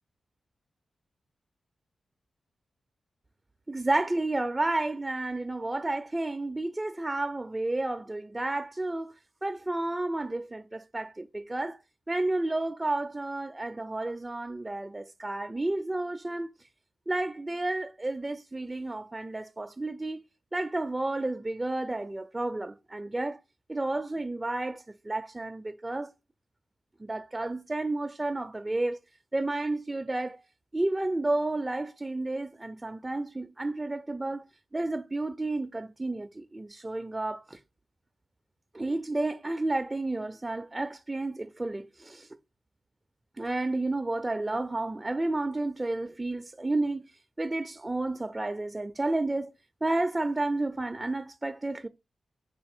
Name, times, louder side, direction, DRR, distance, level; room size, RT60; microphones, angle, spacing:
voice 1, 3.7-9.1 9.4-11.8 12.1-16.5 17.1-20.2 20.5-23.4 23.7-26.1 27.0-29.0 29.3-30.4 30.7-34.4 34.7-37.6 38.7-42.3 43.4-47.0 47.4-49.5 49.8-51.9, right 2 dB, 20° right, 0.4 m, -31 dB
4.0 x 2.8 x 4.3 m
cardioid pair, 65°, 0 cm